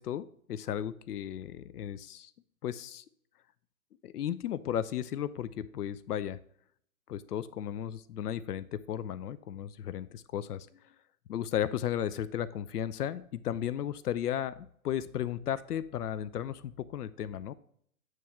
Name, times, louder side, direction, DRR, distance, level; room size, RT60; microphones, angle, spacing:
voice 1, 0.0-2.3 2.6-3.0 4.0-6.4 7.1-10.7 11.3-17.5, left 10 dB, 90° left, 15 dB, 0.6 m, -35 dB
9.1 x 3.2 x 5.6 m, 0.65 s
hypercardioid pair, 160°, 45 cm